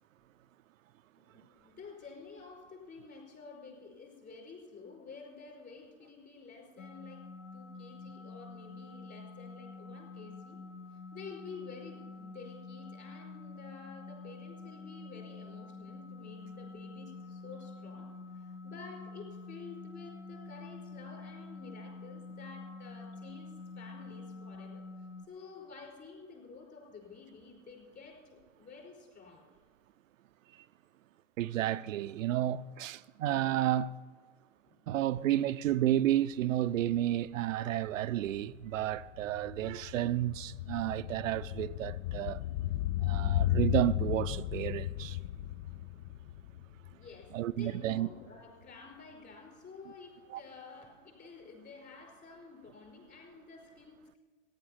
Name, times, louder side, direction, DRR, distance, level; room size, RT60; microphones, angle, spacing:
voice 1, 1.2-7.2 7.5-10.6 10.9-18.1 18.3-24.8 25.3-29.4 34.7-34.8 46.9-54.2, left 4 dB, 25° left, 4.9 m, -50 dB
sound 1, 6.8-25.3, left 3 dB, 80° left, 1.4 m, -47 dB
voice 2, 31.4-34.0 34.9-42.4 43.0-45.2 47.3-48.1 50.3-50.4, right 13 dB, 90° right, 0.5 m, -31 dB
sound 2, 36.9-37.0 37.3-47.6 47.9-48.0, left 14 dB, 55° left, 0.5 m, -35 dB
14.5 x 10.5 x 5.7 m
hypercardioid pair, 105°, 38 cm